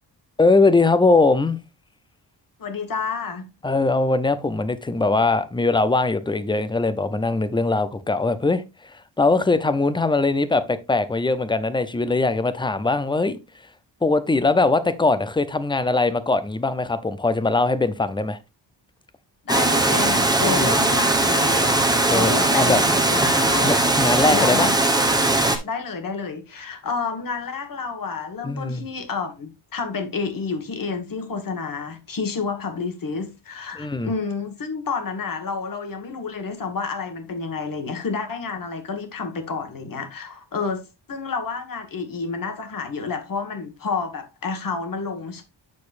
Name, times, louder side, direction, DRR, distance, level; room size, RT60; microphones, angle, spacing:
voice 1, 0.4-1.6 3.6-13.4 14.0-18.4 20.5-20.8 22.1-22.8 23.6-24.7 28.4-28.9 33.7-34.1, left 3 dB, 10° left, 0.5 m, -21 dB
voice 2, 2.6-3.4 19.4-23.9 24.3-24.8 25.6-40.8 41.1-45.4, left 4 dB, 50° left, 1.7 m, -29 dB
Water, 19.5-25.6, right 2 dB, 10° right, 1.1 m, -19 dB
8.5 x 6.6 x 2.5 m
wide cardioid pair, 155°, 44 cm